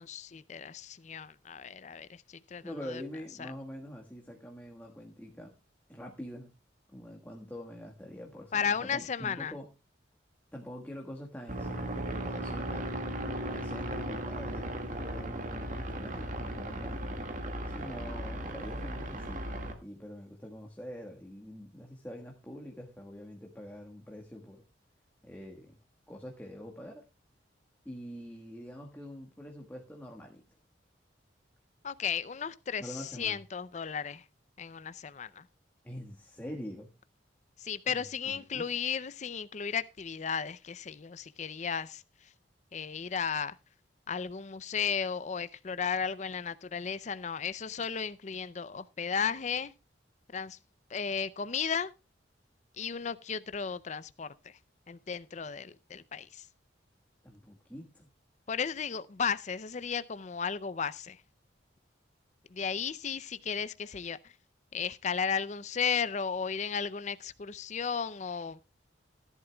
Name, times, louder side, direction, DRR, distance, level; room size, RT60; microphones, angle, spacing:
voice 1, 0.0-3.0 3.4-3.5 8.5-9.5 31.8-34.2 34.6-35.4 37.6-42.0 42.7-43.6 44.1-49.7 50.3-50.6 50.9-51.9 52.8-54.5 54.9-56.5 58.5-61.2 62.5-64.3 64.7-68.6, left 6 dB, 40° left, 0.5 m, -34 dB
voice 2, 2.6-5.5 5.9-6.5 6.9-9.7 10.5-13.0 13.5-17.0 17.7-19.5 19.8-24.6 25.2-25.8 26.1-27.0 27.8-30.4 32.8-33.4 35.8-36.9 37.8-38.0 38.3-38.6 57.2-58.1, equal, 10° left, 1.5 m, -45 dB
sound 1, 11.5-19.7, right 1 dB, 45° right, 1.9 m, -36 dB
17.0 x 11.0 x 2.3 m
head